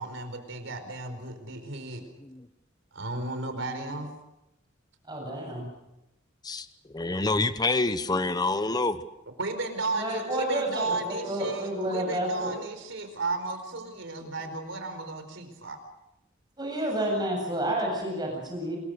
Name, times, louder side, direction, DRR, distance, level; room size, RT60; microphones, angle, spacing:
voice 1, 0.0-2.0 2.9-4.1 9.4-15.8, right 3 dB, 70° right, 7 dB, 4.8 m, -34 dB
voice 2, 5.1-5.7 10.0-12.5 16.6-18.8, right 1 dB, 20° right, 0 dB, 7.9 m, -30 dB
voice 3, 6.9-9.0, left 3 dB, 20° left, 12 dB, 0.9 m, -27 dB
26.5 x 22.0 x 6.7 m, 0.92 s
head